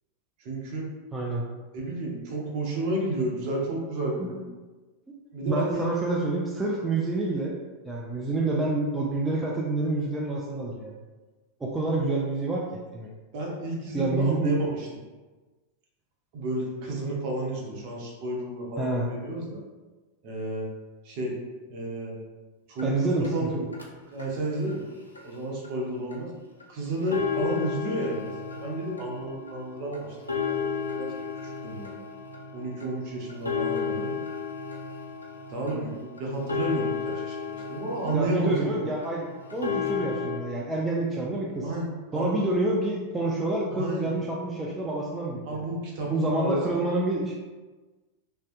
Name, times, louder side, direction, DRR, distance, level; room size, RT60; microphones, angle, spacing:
voice 1, 0.4-0.9 1.7-4.4 5.3-5.8 13.3-14.9 16.3-19.6 20.2-20.7 21.0-21.3 21.7-22.2 22.7-23.6 24.1-24.8 25.2-26.3 26.7-30.2 30.4-31.1 31.4-32.0 32.5-34.1 35.5-38.8 41.6-42.4 43.7-44.1 45.5-46.8, right 1 dB, 45° right, -1 dB, 0.6 m, -31 dB
voice 2, 1.1-1.4 4.2-4.3 5.4-7.5 7.8-11.0 11.6-13.1 13.9-14.6 18.8-19.1 22.8-23.7 38.1-39.3 39.5-41.7 42.1-45.6 46.1-47.3, right 2 dB, 10° right, -3 dB, 0.3 m, -28 dB
sound 1, 22.8-22.9 23.2-23.3 23.7-23.9 24.2-24.3 24.7-24.8 25.2-25.3 25.6-25.7 26.1-26.2 26.6-26.7 27.0-40.4, left 6 dB, 80° left, 0.3 m, -33 dB
2.6 x 2.1 x 2.5 m, 1.3 s
figure-of-eight pair, 90°, 0 cm